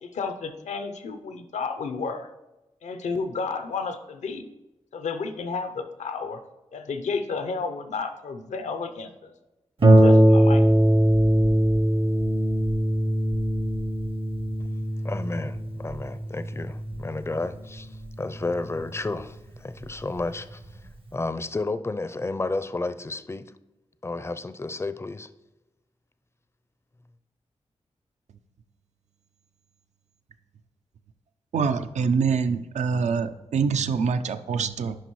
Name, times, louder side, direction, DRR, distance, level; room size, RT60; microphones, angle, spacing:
voice 1, 0.0-2.3 2.8-4.5 4.9-6.4 6.7-9.3 9.8-10.6, left 4 dB, 80° left, 0.6 m, -32 dB
Harp, 9.8-19.0 19.8-19.9 20.4-20.5, right 1 dB, 50° right, 0.8 m, -21 dB
voice 2, 15.0-17.9 18.2-20.6 21.1-23.4 24.0-25.3, left 2 dB, 20° left, 0.4 m, -31 dB
voice 3, 31.5-35.0, right 5 dB, 80° right, 0.4 m, -25 dB
10.0 x 5.3 x 3.1 m
cardioid pair, 45°, 12 cm